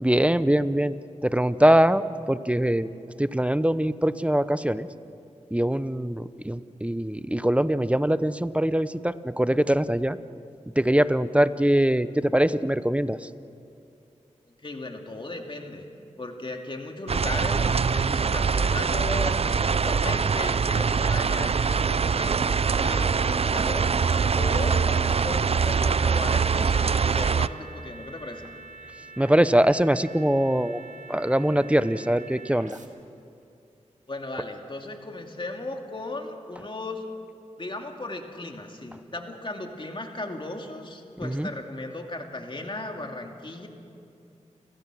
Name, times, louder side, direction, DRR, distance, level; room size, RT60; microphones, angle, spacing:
voice 1, 0.0-0.9 1.2-2.9 3.2-4.9 5.5-10.2 10.8-13.3 29.2-30.8 31.1-32.8 41.2-41.5, right 1 dB, 10° right, 14 dB, 0.7 m, -22 dB
voice 2, 14.5-15.9 16.2-28.5 34.1-37.0 37.6-43.7, left 2 dB, 40° left, 3 dB, 2.4 m, -36 dB
sound 1, 17.1-27.5, right 5 dB, 50° right, 0.5 m, -23 dB
sound 2, 26.0-32.9, right 4 dB, 75° right, 1.9 m, -46 dB
29.5 x 16.0 x 6.2 m, 2.6 s
cardioid pair, 50°, 13 cm